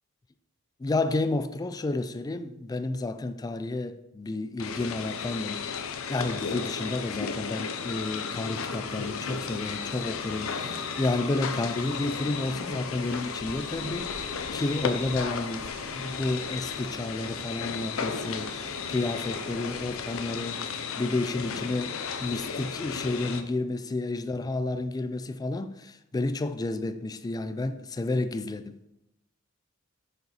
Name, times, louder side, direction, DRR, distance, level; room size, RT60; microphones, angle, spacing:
voice 1, 0.8-28.7, left 2 dB, 20° left, 0.3 m, -31 dB
sound 1, 4.6-23.4, left 6 dB, 70° left, 0.5 m, -34 dB
sound 2, 8.9-20.2, right 3 dB, 45° right, 0.5 m, -48 dB
sound 3, 9.4-10.2 10.5-19.8 20.1-20.5, left 1 dB, 10° right, 2.5 m, -58 dB
6.6 x 5.3 x 4.2 m
head